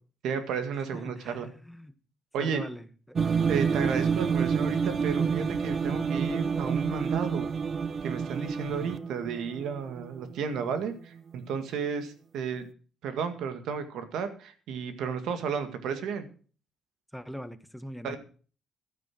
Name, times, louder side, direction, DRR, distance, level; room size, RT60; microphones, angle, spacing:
voice 1, 0.2-1.5 2.3-2.7 3.5-7.5 8.0-12.7 13.0-16.3 18.0-18.2, right 6 dB, 85° right, 9 dB, 2.0 m, -33 dB
voice 2, 0.9-2.0 2.4-3.2 3.7-4.2 8.6-9.0 17.1-18.2, equal, ahead, 10 dB, 1.3 m, -42 dB
sound 1, 3.2-10.8, right 6 dB, 45° right, 0.6 m, -29 dB
12.0 x 9.7 x 6.2 m, 0.41 s
cardioid pair, 90°, 0 cm